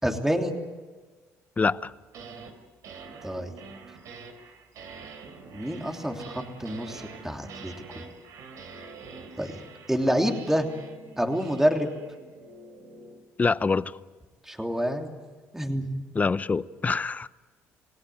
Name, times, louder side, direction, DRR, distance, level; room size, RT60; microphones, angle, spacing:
voice 1, 0.0-0.5 3.2-3.5 5.5-8.0 9.4-9.5 9.9-10.7 11.2-11.9 14.4-15.1 15.5-15.9, equal, 5° right, 3.1 m, -27 dB
voice 2, 1.6-1.9 13.4-13.9 16.1-17.3, left 4 dB, 25° left, 0.8 m, -25 dB
sound 1, 1.9-2.5 2.8-13.2, right 4 dB, 65° right, 3.6 m, -45 dB
28.5 x 17.0 x 9.3 m
supercardioid pair, 80°, 6 cm